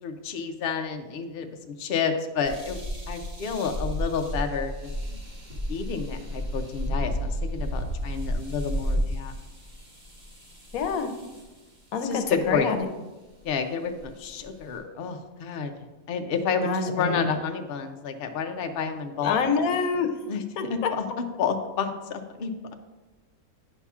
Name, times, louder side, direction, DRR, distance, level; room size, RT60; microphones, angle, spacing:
voice 1, 0.0-2.8 3.1-4.9 5.7-9.3 12.0-12.7 13.4-15.7 16.1-19.4 20.3-20.4 21.0-21.1 21.4-22.7, left 6 dB, 55° left, 5 dB, 0.7 m, -30 dB
sound 1, 2.4-11.6 12.4-12.8 13.4-13.5 14.0-14.8, equal, 45° right, 1.8 m, -32 dB
voice 2, 10.7-11.1 11.9-12.9 16.6-17.3 19.2-20.1 20.6-20.9, left 5 dB, 85° left, 7 dB, 1.1 m, -26 dB
9.9 x 5.6 x 2.4 m, 1.2 s
omnidirectional pair, 1.5 m